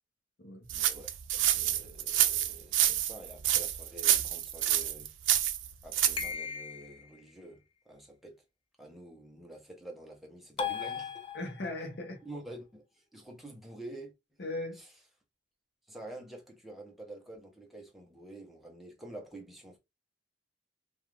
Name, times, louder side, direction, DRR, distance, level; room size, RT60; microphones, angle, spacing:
voice 1, 0.7-5.1 5.8-8.4 8.8-11.2 12.2-14.1 14.7-14.9 15.9-19.8, right 1 dB, ahead, 0.7 m, -48 dB
sound 1, 0.7-6.3, right 12 dB, 85° right, 0.4 m, -28 dB
sound 2, 6.2-7.1 10.6-11.8, left 7 dB, 30° left, 0.4 m, -37 dB
voice 2, 11.3-12.2 14.4-14.8, left 2 dB, 65° left, 0.8 m, -38 dB
2.4 x 2.4 x 3.1 m
head